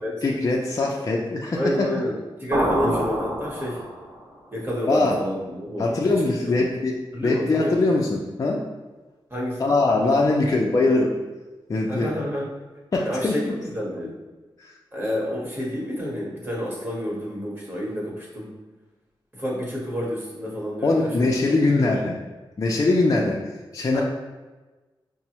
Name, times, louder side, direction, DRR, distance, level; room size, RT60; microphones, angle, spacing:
voice 1, 0.2-1.9 2.8-2.9 4.9-5.2 5.8-7.0 7.2-8.6 9.6-11.1 11.7-12.1 12.9-13.4 14.6-14.7 20.8-22.1 22.6-23.4 23.7-24.0, left 2 dB, 40° left, -2 dB, 0.4 m, -22 dB
voice 2, 1.5-3.8 4.5-6.7 7.1-7.7 9.3-9.8 11.9-12.5 13.0-14.1 14.9-18.6 19.3-21.3 21.8-22.1 23.9-24.0, equal, 25° right, -4 dB, 1.0 m, -29 dB
sound 1, 2.5-4.2, right 1 dB, 70° right, 0.8 m, -26 dB
5.2 x 2.0 x 2.9 m, 1.2 s
wide cardioid pair, 120°, 9 cm